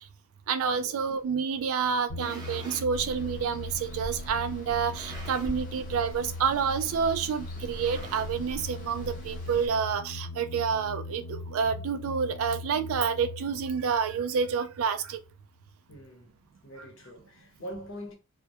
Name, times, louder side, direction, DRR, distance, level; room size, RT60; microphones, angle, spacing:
voice 1, 0.5-15.2, right 6 dB, 80° right, 0.3 m, -29 dB
sound 1, 2.0-2.9 3.7-3.8 4.7-5.7 6.0-6.3 6.6-6.7 7.6-8.6, right 2 dB, 20° right, 0.5 m, -46 dB
sound 2, 2.1-15.3, left 2 dB, 85° left, 1.0 m, -40 dB
Water, 2.9-9.7, equal, 40° left, 0.6 m, -43 dB
voice 2, 15.9-16.3 16.6-18.2, equal, 65° left, 0.8 m, -43 dB
2.2 x 2.1 x 2.7 m
head